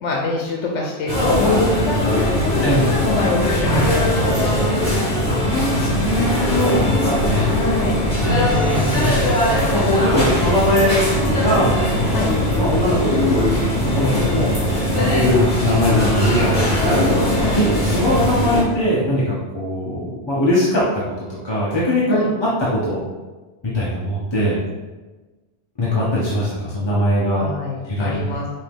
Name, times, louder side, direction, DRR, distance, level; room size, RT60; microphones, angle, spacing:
voice 1, 0.0-3.8 4.1-4.8 7.5-8.0 12.1-12.3 14.9-15.1 17.4-17.6 22.1-22.3 27.4-28.6, left 3 dB, 85° left, -1 dB, 1.0 m, -25 dB
sound 1, 1.1-18.6, left 1 dB, 45° left, 1.3 m, -19 dB
voice 2, 5.3-7.5 8.2-9.1 9.4-11.1 11.3-12.3 12.6-13.4 13.7-20.9 21.4-23.0 23.6-24.6 25.8-27.5 27.8-28.2, left 1 dB, 25° left, -8 dB, 0.8 m, -21 dB
5.5 x 2.6 x 3.5 m, 1.2 s
omnidirectional pair, 1.2 m